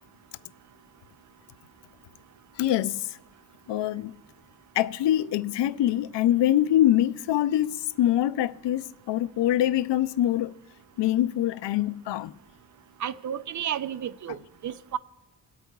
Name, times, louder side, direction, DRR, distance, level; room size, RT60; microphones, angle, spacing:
voice 1, 2.6-3.2 3.7-4.1 4.7-10.5 11.0-12.4, left 12 dB, 75° left, 0.5 m, -24 dB
voice 2, 13.0-14.4 14.6-15.0, right 9 dB, 45° right, 0.4 m, -32 dB
23.0 x 8.6 x 2.3 m
cardioid pair, 100°, 43 cm